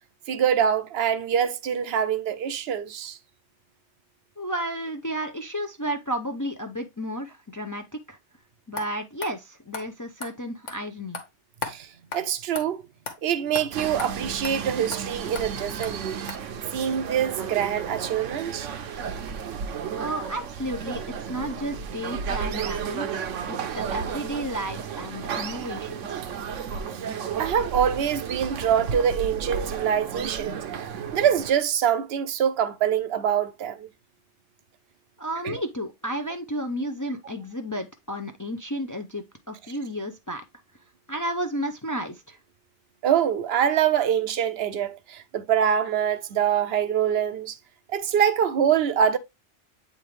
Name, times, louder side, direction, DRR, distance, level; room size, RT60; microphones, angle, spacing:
voice 1, 0.3-3.2 11.6-11.9 12.1-12.8 13.2-16.2 16.7-18.7 27.4-30.6 31.1-33.9 35.4-35.6 43.0-47.6 47.9-49.2, right 8 dB, 65° right, 0.7 m, -24 dB
voice 2, 4.4-8.2 8.7-11.2 19.9-21.0 21.3-26.2 35.2-40.4 41.1-42.4, equal, 30° left, 0.3 m, -32 dB
sound 1, 8.8-8.9 9.2-9.3 9.7-9.9 10.2-10.3 10.7-10.8 11.1-11.3 11.6-11.8 12.1-12.2 12.6-12.7 13.1-13.2 13.6-13.7 14.0-14.1 14.4-14.6 14.9-15.0 15.4-15.5 15.8-15.9 16.3-16.4, left 4 dB, 75° left, 1.6 m, -34 dB
sound 2, 13.7-31.5, right 7 dB, 80° right, 1.0 m, -33 dB
8.5 x 3.6 x 3.1 m
omnidirectional pair, 1.3 m